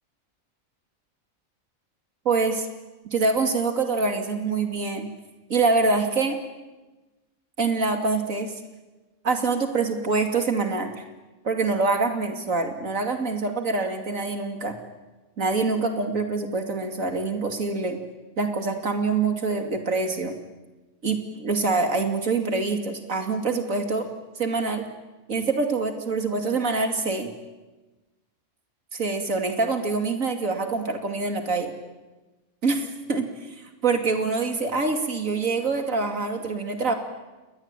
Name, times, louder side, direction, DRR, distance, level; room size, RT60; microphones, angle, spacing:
voice 1, 2.2-2.7 3.0-5.1 5.5-6.4 7.6-8.5 9.2-10.9 11.4-14.8 15.4-18.0 18.4-20.4 21.0-24.1 24.4-24.9 25.3-27.3 28.9-31.7 32.6-33.5 33.8-36.9, right 3 dB, 70° right, 5 dB, 3.0 m, -25 dB
28.0 x 21.0 x 9.1 m, 1.2 s
omnidirectional pair, 1.5 m